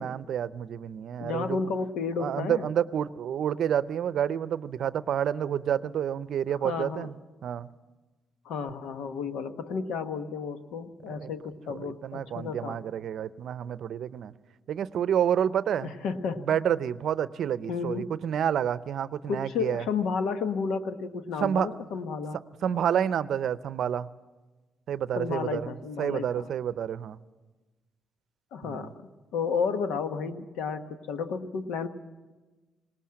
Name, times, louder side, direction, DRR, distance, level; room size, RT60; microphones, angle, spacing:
voice 1, 0.0-1.6 2.2-7.1 7.4-7.7 11.1-11.3 11.7-14.3 14.7-15.9 16.4-19.8 21.4-21.7 22.6-24.1 24.9-25.7 26.0-27.2 28.6-28.9, right 9 dB, 65° right, 16 dB, 0.6 m, -29 dB
voice 2, 1.2-2.7 6.5-7.1 8.4-12.8 15.8-16.6 17.7-18.1 19.3-22.4 25.1-26.5 28.5-31.9, left 5 dB, 85° left, 9 dB, 1.1 m, -32 dB
19.5 x 18.5 x 7.5 m, 1.2 s
cardioid pair, 90°, 0 cm